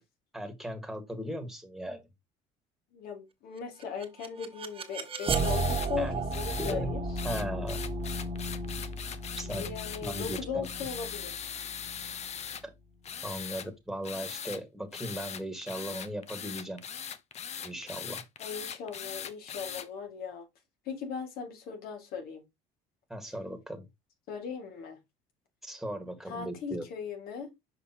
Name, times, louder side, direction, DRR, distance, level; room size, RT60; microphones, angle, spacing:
voice 1, 0.3-2.0 6.0-6.2 6.6-6.9 7.2-7.8 9.4-9.7 10.0-10.7 13.2-16.8 17.6-18.2 23.1-23.9 25.6-26.8, equal, ahead, 1.7 m, -37 dB
voice 2, 2.9-7.0 9.4-11.5 18.4-20.5 20.8-22.4 24.3-25.0 26.3-27.5, left 6 dB, 65° left, 2.2 m, -38 dB
sound 1, 3.8-12.8, right 2 dB, 35° right, 1.4 m, -34 dB
sound 2, 5.3-5.9 6.3-6.8 7.2-12.6 13.0-13.7 14.0-14.6 14.9-19.9, left 8 dB, 40° left, 0.8 m, -40 dB
6.4 x 5.1 x 2.9 m
supercardioid pair, 90°, 17 cm